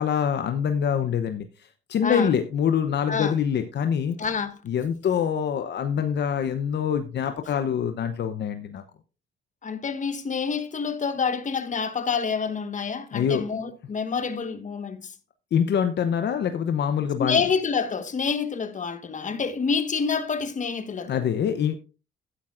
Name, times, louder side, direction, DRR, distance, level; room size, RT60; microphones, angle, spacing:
voice 1, 0.0-1.5 1.9-4.2 4.7-8.8 13.1-13.4 15.5-17.4 21.1-21.8, left 8 dB, 60° left, 0.8 m, -25 dB
voice 2, 2.0-2.3 3.1-3.3 4.2-4.6 9.6-15.1 17.2-21.1, left 5 dB, 40° left, 1.3 m, -27 dB
12.0 x 10.5 x 2.5 m
cardioid pair, 90°, 20 cm